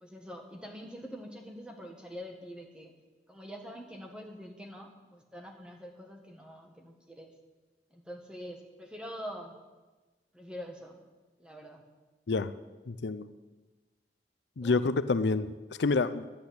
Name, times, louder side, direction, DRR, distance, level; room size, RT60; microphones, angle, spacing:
voice 1, 0.0-2.9 3.3-7.3 7.9-9.5 10.3-11.0 11.4-11.8 14.6-14.8, equal, 5° right, 1 dB, 1.5 m, -45 dB
voice 2, 12.9-13.3 14.6-16.3, left 3 dB, 90° left, 14 dB, 0.5 m, -28 dB
10.5 x 10.5 x 8.0 m, 1.2 s
head